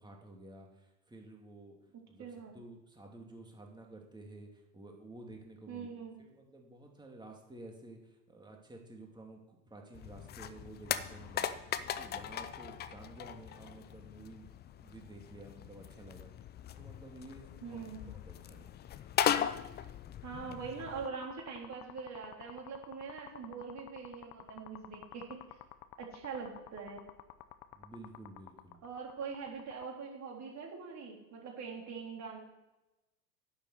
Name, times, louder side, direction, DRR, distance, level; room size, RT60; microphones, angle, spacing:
voice 1, 0.0-1.8 2.1-2.3 2.5-5.9 6.2-14.5 14.8-16.3 16.7-18.7 27.7-28.8, right 2 dB, 10° right, 1 dB, 2.5 m, -52 dB
voice 2, 2.2-2.5 5.7-6.1 17.6-18.1 20.2-25.4 26.0-27.0 28.8-32.4, right 5 dB, 35° right, -1 dB, 3.8 m, -43 dB
sound 1, 9.9-21.1, left 10 dB, 20° left, 0.5 m, -38 dB
sound 2, 20.8-29.8, left 15 dB, 45° left, 0.9 m, -51 dB
10.5 x 7.5 x 7.9 m, 1.0 s
hypercardioid pair, 90°, 48 cm